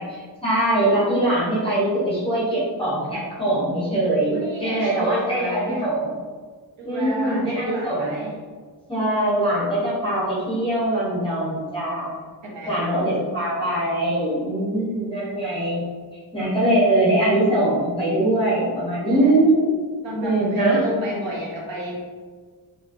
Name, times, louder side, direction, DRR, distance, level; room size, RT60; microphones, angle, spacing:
voice 1, 0.0-6.1 6.8-8.3 8.9-12.2 12.7-15.9 16.3-19.7 20.2-20.8, right 1 dB, 10° left, -8 dB, 0.8 m, -22 dB
voice 2, 4.3-5.9 6.8-8.3 12.4-12.8 19.1-19.4 20.0-22.1, equal, 70° right, -3 dB, 0.8 m, -31 dB
2.9 x 2.3 x 2.5 m, 1.5 s
wide cardioid pair, 165°, 46 cm